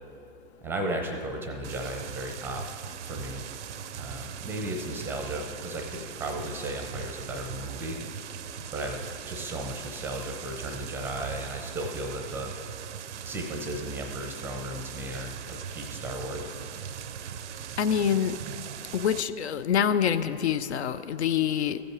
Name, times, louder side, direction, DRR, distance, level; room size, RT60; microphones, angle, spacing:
voice 1, 0.6-2.7 3.0-3.5 3.9-8.0 8.7-12.5 13.2-16.5, right 1 dB, 5° right, 3 dB, 0.5 m, -35 dB
sound 1, 1.6-19.2, right 8 dB, 85° right, 0.5 m, -40 dB
voice 2, 17.8-18.4 18.9-21.8, left 8 dB, 75° left, 13 dB, 0.5 m, -26 dB
14.5 x 5.2 x 4.7 m, 2.4 s
hypercardioid pair, 130°, 34 cm